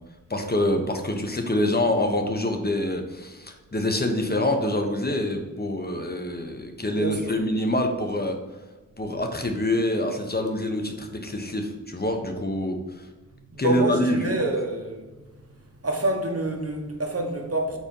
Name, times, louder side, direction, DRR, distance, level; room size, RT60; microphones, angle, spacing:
voice 1, 0.3-8.4 9.0-13.1 13.6-14.3, left 1 dB, 30° left, 1.0 m, -26 dB
voice 2, 6.8-7.4 13.5-15.1 15.8-17.8, right 2 dB, 45° right, 1.1 m, -27 dB
4.5 x 4.3 x 5.3 m
wide cardioid pair, 50°, 32 cm